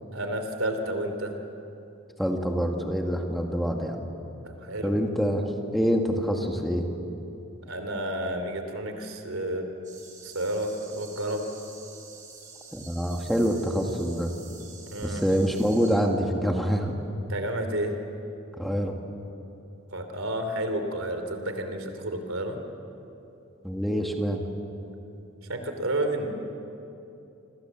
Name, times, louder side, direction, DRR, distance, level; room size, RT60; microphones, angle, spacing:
voice 1, 0.1-1.3 4.4-4.9 7.7-9.6 10.2-11.5 14.9-15.2 17.3-17.9 19.9-22.6 25.5-26.3, right 1 dB, 80° right, 6 dB, 3.2 m, -30 dB
voice 2, 2.2-4.1 4.8-5.4 5.7-6.9 12.7-14.3 15.0-16.9 18.6-18.9 23.6-24.4, equal, ahead, 2 dB, 1.9 m, -26 dB
sound 1, 9.8-16.0, right 5 dB, 40° right, 6.4 m, -48 dB
28.0 x 26.0 x 7.6 m, 2.9 s
head